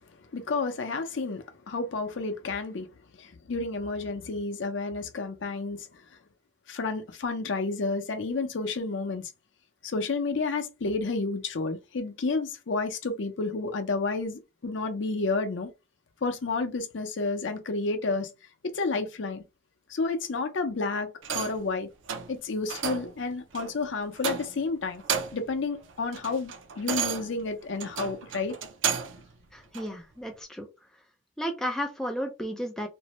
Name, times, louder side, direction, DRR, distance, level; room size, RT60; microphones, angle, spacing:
voice 1, 0.3-2.9 3.2-6.0 6.7-9.3 9.8-15.7 16.2-18.3 18.6-19.4 19.9-21.9 22.3-25.0 25.3-28.6, left 3 dB, 75° left, 0.5 m, -30 dB
sound 1, 21.2-21.7 22.1-22.3 22.7-23.1 23.5-23.7 24.2-24.7 25.0-25.5 25.9-29.2 29.7-29.9, right 7 dB, 85° right, 0.4 m, -32 dB
voice 2, 29.5-30.7 31.4-32.9, equal, 5° left, 0.4 m, -33 dB
2.6 x 2.1 x 2.9 m
head